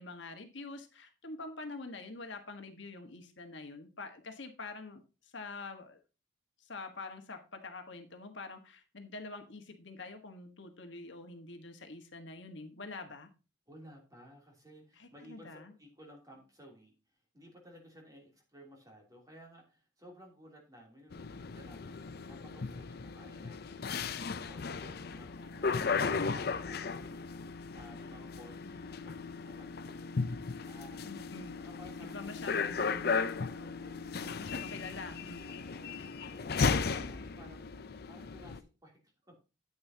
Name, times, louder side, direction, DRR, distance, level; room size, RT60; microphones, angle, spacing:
voice 1, 0.0-6.0 6.6-13.3 15.0-15.7 31.0-31.6 32.0-33.1 34.1-35.5, left 3 dB, 65° left, 6 dB, 1.4 m, -46 dB
voice 2, 13.7-30.2 30.6-31.2 31.6-32.5 33.5-34.6 35.5-37.8 38.1-39.4, equal, 20° right, -1 dB, 3.0 m, -56 dB
sound 1, 21.1-38.6, left 5 dB, 50° left, 0.5 m, -36 dB
9.5 x 8.8 x 2.8 m, 0.31 s
head